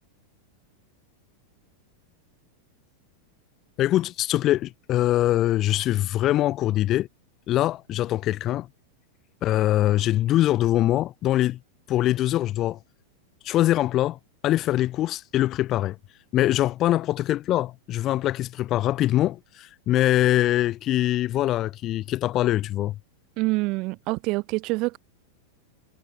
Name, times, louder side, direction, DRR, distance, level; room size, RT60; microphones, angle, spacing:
voice 1, 3.8-7.1 7.5-8.7 9.4-11.6 11.9-12.8 13.4-16.0 16.3-22.9, left 14 dB, 35° left, 1.3 m, -23 dB
voice 2, 23.4-25.0, right 23 dB, 40° right, 3.1 m, -26 dB
figure-of-eight pair, 90°, 0 cm